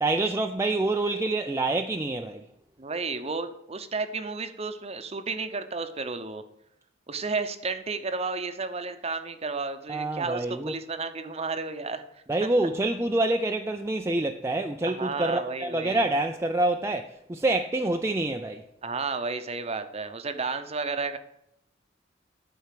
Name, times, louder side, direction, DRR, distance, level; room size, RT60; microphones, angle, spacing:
voice 1, 0.0-2.5 9.9-10.7 12.3-18.6, right 2 dB, 15° right, 0.4 m, -27 dB
voice 2, 2.8-6.4 7.1-12.5 14.8-16.1 18.8-21.2, right 4 dB, 35° right, 0.8 m, -32 dB
10.5 x 4.6 x 7.6 m
head